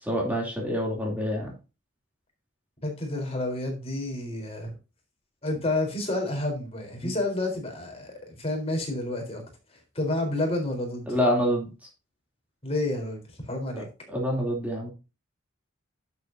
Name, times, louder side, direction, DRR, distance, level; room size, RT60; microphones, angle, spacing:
voice 1, 0.0-1.5 7.0-7.1 11.1-11.7 13.8-14.9, equal, 10° right, -2 dB, 2.9 m, -27 dB
voice 2, 2.8-4.7 5.4-9.4 9.7-11.2 12.6-13.2 13.5-13.9, left 2 dB, 30° left, 2 dB, 4.0 m, -30 dB
11.5 x 7.4 x 2.7 m, 0.30 s
head